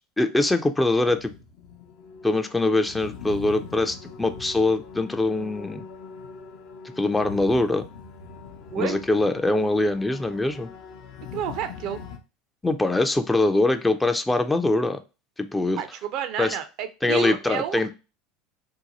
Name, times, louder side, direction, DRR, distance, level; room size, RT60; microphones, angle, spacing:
voice 1, 0.2-1.3 2.2-5.8 7.0-7.8 8.8-10.7 12.6-15.0 15.4-15.8 16.4-16.6 17.0-17.9, left 2 dB, 10° left, 8 dB, 0.4 m, -23 dB
sound 1, 1.1-12.2, left 5 dB, 60° left, 0.6 m, -42 dB
voice 2, 11.3-12.0 15.8-17.9, right 9 dB, 55° right, 9 dB, 0.4 m, -30 dB
2.7 x 2.2 x 4.0 m, 0.30 s
hypercardioid pair, 80°, 0 cm